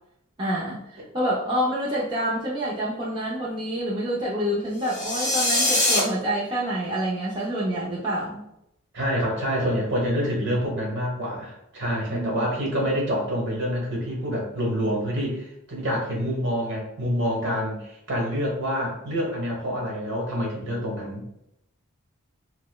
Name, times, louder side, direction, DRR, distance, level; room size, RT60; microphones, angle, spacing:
voice 1, 0.4-8.4 12.1-12.4, equal, 20° right, -7 dB, 0.5 m, -27 dB
sound 1, 4.8-6.0, left 1 dB, 30° left, 0.9 m, -22 dB
voice 2, 8.9-21.2, equal, 55° right, -1 dB, 1.1 m, -27 dB
5.0 x 2.0 x 2.2 m, 0.81 s
head